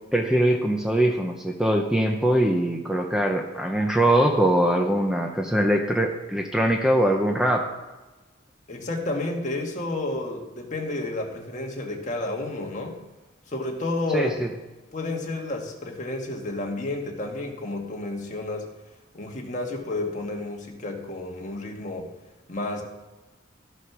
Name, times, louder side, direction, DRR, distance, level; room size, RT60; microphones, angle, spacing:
voice 1, 0.1-7.7 14.1-14.5, right 1 dB, 5° right, 2 dB, 0.7 m, -22 dB
voice 2, 8.7-13.0 13.5-14.4 14.9-18.7 19.1-22.1 22.5-22.8, left 2 dB, 40° left, 1 dB, 1.6 m, -31 dB
13.0 x 6.5 x 6.0 m, 1.1 s
head